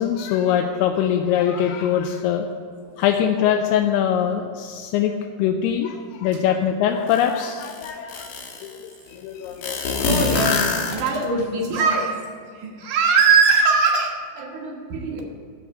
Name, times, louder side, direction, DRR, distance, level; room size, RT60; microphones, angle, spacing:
voice 1, 0.0-2.5 3.0-5.1 5.4-8.3 8.6-8.7 9.1-9.8, left 9 dB, 85° left, 4 dB, 2.5 m, -22 dB
sound 1, 7.1-7.2 7.6-8.7 9.6-11.4, left 4 dB, 70° left, 2.8 m, -24 dB
voice 2, 9.7-10.6 10.9-12.3 12.5-15.2, right 5 dB, 60° right, 0 dB, 2.4 m, -21 dB
13.0 x 4.8 x 8.3 m, 2.1 s
omnidirectional pair, 4.5 m